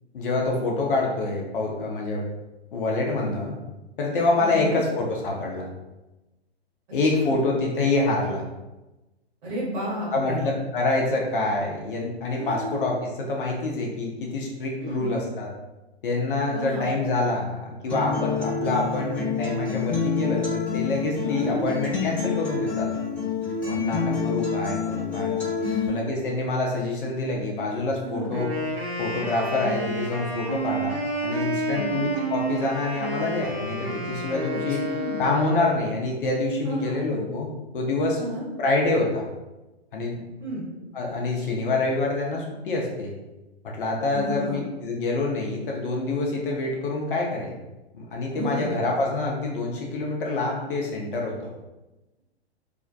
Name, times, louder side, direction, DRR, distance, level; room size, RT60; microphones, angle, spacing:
voice 1, 0.1-2.2 2.7-3.6 4.0-5.7 6.9-8.4 10.1-15.5 16.0-22.9 23.7-25.4 25.8-28.5 29.0-34.8 35.2-37.5 37.7-38.2 38.6-39.3 39.9-40.2 40.9-43.1 43.6-47.5 47.9-51.4, left 2 dB, 55° left, -1 dB, 0.6 m, -26 dB
voice 2, 4.4-4.8 7.1-7.3 9.4-10.5 12.3-12.8 14.8-15.1 16.5-16.9 21.2-21.7 23.7-24.1 25.6-26.0 28.0-28.3 31.7-32.1 34.5-35.2 36.6-37.2 38.2-38.4 40.4-40.7 44.1-44.6 48.3-48.7, equal, 45° right, -6 dB, 1.2 m, -32 dB
Acoustic guitar, 17.9-25.9, left 5 dB, 5° left, 0.8 m, -27 dB
Wind instrument woodwind instrument, 28.2-36.0, right 1 dB, 60° right, 0.8 m, -30 dB
2.4 x 2.1 x 2.5 m, 1.0 s
figure-of-eight pair, 115°, 33 cm